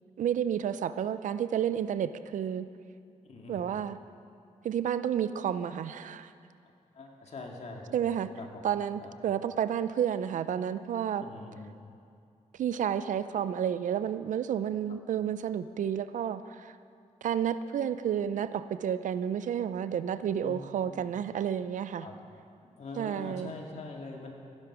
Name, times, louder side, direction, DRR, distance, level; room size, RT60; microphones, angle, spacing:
voice 1, 0.2-2.7 3.5-4.0 4.6-6.3 7.9-8.3 8.6-11.2 12.6-16.8 17.2-22.1 23.0-23.5, right 9 dB, 85° right, 13 dB, 0.5 m, -31 dB
voice 2, 3.3-3.8 6.9-8.6 9.0-9.1 11.2-11.8 14.9-15.0 20.4-20.6 21.0-21.1 22.0-22.2 22.8-24.3, left 3 dB, 60° left, 1 dB, 2.0 m, -43 dB
15.5 x 10.5 x 6.0 m, 2.4 s
wide cardioid pair, 120°, 13 cm